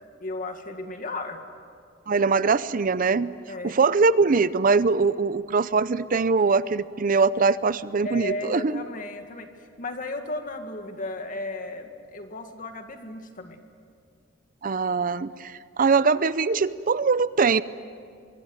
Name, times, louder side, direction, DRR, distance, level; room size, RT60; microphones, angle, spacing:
voice 1, 0.2-1.4 3.5-3.8 8.0-13.6, left 2 dB, 45° left, 5 dB, 2.0 m, -35 dB
voice 2, 2.1-3.4 3.6-8.8 14.6-17.6, right 4 dB, 45° right, 16 dB, 0.6 m, -22 dB
24.0 x 24.0 x 9.4 m, 2.2 s
head